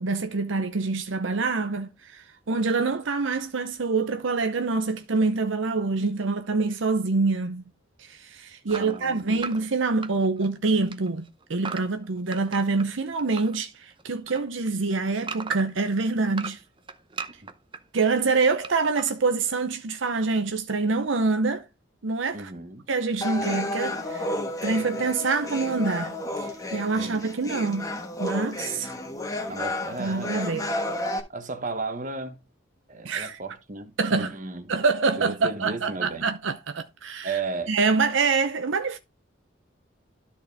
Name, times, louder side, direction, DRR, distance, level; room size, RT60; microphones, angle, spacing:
voice 1, 0.0-7.6 8.0-16.6 17.9-21.6 22.0-22.5 22.9-24.3 24.6-26.2 26.4-27.9 28.2-28.9 30.0-30.7 33.0-33.4 34.0-34.3 34.7-37.3 37.7-39.0, right 4 dB, 80° right, 0.8 m, -26 dB
sound 1, 8.7-10.6 10.8-13.6 13.9-15.8 16.2-17.8 18.6-19.1, right 5 dB, 25° right, 0.7 m, -38 dB
voice 2, 8.7-9.5 17.4-17.5 22.3-22.8 26.9-27.2 29.5-30.5 31.3-32.4 32.9-34.7 35.2-36.3 37.2-37.7, right 3 dB, 40° right, 1.3 m, -34 dB
sound 2, 23.2-31.2, left 1 dB, 20° left, 1.3 m, -32 dB
12.5 x 4.3 x 3.5 m
head